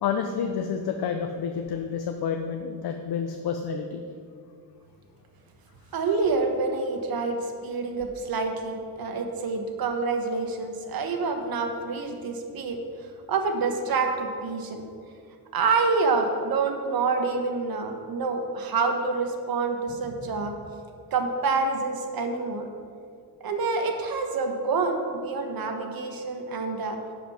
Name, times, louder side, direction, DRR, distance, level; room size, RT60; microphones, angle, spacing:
voice 1, 0.0-4.0, left 7 dB, 90° left, 5 dB, 0.7 m, -29 dB
voice 2, 5.9-12.8 13.3-14.8 15.5-20.5 21.1-22.7 23.4-27.0, right 4 dB, 70° right, 4 dB, 1.1 m, -27 dB
11.0 x 5.1 x 5.6 m, 2.3 s
wide cardioid pair, 150°, 37 cm